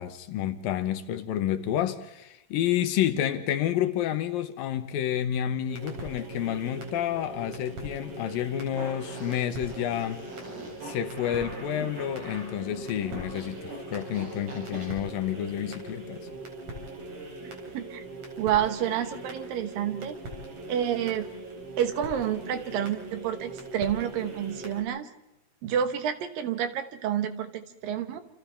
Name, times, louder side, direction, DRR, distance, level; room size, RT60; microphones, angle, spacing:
voice 1, 0.0-10.2 10.8-16.3, left 11 dB, 75° left, 2.7 m, -29 dB
sound 1, 5.7-24.8, right 2 dB, 55° right, 5.3 m, -41 dB
Fart, 8.8-14.9, right 1 dB, 90° right, 7.4 m, -43 dB
voice 2, 17.4-18.0 18.4-20.2 20.7-21.4 21.8-25.1 25.6-28.2, right 9 dB, 70° right, 2.8 m, -29 dB
28.5 x 28.5 x 3.5 m
omnidirectional pair, 4.3 m